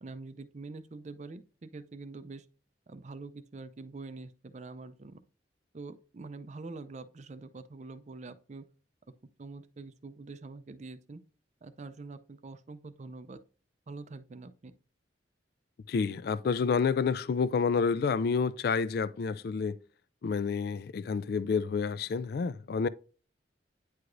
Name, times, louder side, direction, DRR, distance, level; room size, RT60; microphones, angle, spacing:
voice 1, 0.0-2.4 2.9-5.2 5.7-8.6 9.4-11.2 11.6-13.4 13.9-14.7, right 3 dB, 40° right, 0.5 m, -45 dB
voice 2, 15.9-19.8 20.2-22.9, left 5 dB, 55° left, 0.3 m, -29 dB
9.5 x 4.7 x 2.5 m
head